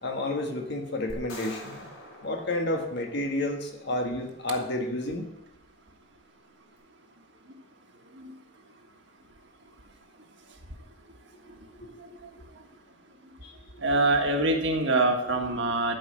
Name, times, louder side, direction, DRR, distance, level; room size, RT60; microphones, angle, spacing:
voice 1, 0.0-1.9 2.2-5.3 11.8-12.2 13.4-13.5, left 1 dB, 60° left, 3 dB, 1.6 m, -31 dB
sound 1, 1.1-3.5, left 1 dB, 90° left, 4.1 m, -45 dB
voice 2, 12.0-12.3 13.8-16.0, right 2 dB, 60° right, 3 dB, 1.6 m, -25 dB
12.5 x 5.4 x 7.4 m, 0.88 s
head